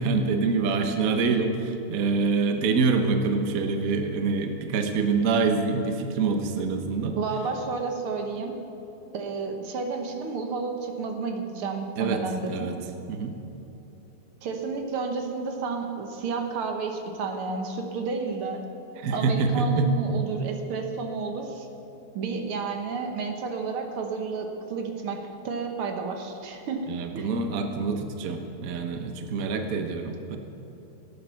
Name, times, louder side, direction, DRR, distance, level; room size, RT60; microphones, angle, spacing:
voice 1, 0.0-7.2 12.0-12.8 13.1-13.4 19.0-19.9 26.9-30.4, right 4 dB, 55° right, 5 dB, 1.1 m, -26 dB
voice 2, 7.2-8.6 9.1-12.7 14.4-18.6 19.1-21.7 22.2-27.3, right 4 dB, 80° right, 4 dB, 2.0 m, -31 dB
16.5 x 8.7 x 5.7 m, 2.9 s
omnidirectional pair, 2.4 m